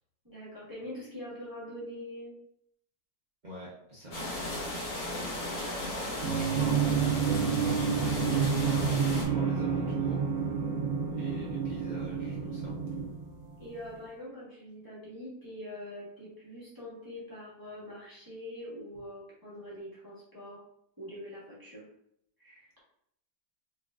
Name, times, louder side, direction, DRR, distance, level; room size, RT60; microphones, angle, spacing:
voice 1, 0.2-2.3 13.6-20.6 21.0-21.8 22.4-22.7, left 1 dB, 15° right, -9 dB, 1.2 m, -44 dB
voice 2, 3.4-5.3 5.8-10.2 11.1-12.7, equal, 35° right, -7 dB, 0.7 m, -45 dB
sound 1, 4.1-9.2, left 1 dB, 70° left, 1.9 m, -36 dB
sound 2, 6.2-13.8, right 6 dB, 65° right, 1.6 m, -29 dB
4.1 x 3.3 x 2.4 m, 0.75 s
omnidirectional pair, 2.0 m